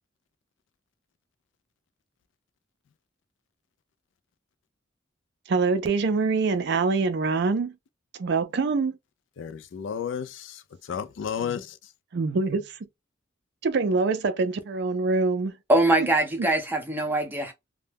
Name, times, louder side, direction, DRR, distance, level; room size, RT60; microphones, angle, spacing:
voice 1, 5.5-7.8 8.1-9.0 12.1-12.8 13.6-15.6 16.0-16.1 16.4-16.5, right 4 dB, 60° right, 0.4 m, -25 dB
voice 2, 9.4-11.8, left 7 dB, 65° left, 0.3 m, -33 dB
voice 3, 15.7-17.5, right 2 dB, 10° right, 0.6 m, -23 dB
2.1 x 2.1 x 3.3 m
head